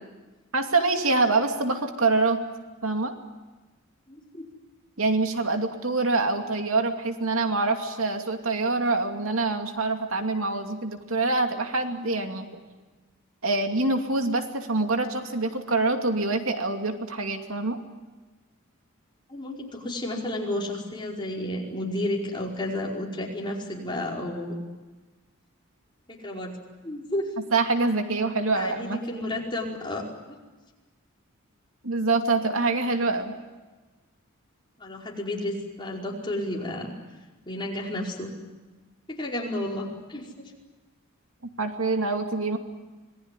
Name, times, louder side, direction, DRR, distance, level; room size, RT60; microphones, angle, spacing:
voice 1, 0.5-2.4 2.8-3.1 5.0-12.6 13.4-17.8 27.5-29.0 31.8-33.3 41.6-42.6, right 3 dB, 85° right, 5 dB, 2.6 m, -25 dB
voice 2, 4.1-4.4 19.3-24.5 26.1-26.6 26.8-27.3 28.5-30.0 34.8-36.9 37.4-38.3 39.1-40.3, left 1 dB, 25° left, -2 dB, 5.0 m, -31 dB
26.5 x 20.0 x 9.9 m, 1.2 s
head